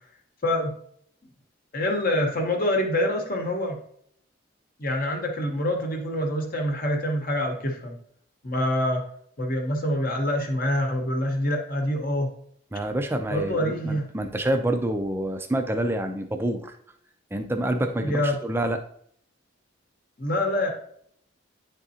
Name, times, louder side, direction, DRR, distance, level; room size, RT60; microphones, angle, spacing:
voice 1, 0.4-0.8 1.7-3.8 4.8-8.0 8.4-9.0 9.4-12.3 13.3-14.1 18.0-18.4 20.2-20.7, left 1 dB, 45° left, 2 dB, 0.9 m, -26 dB
voice 2, 12.7-16.7 17.3-18.8, right 1 dB, 10° right, 6 dB, 0.4 m, -27 dB
9.5 x 3.7 x 2.8 m, 0.65 s
head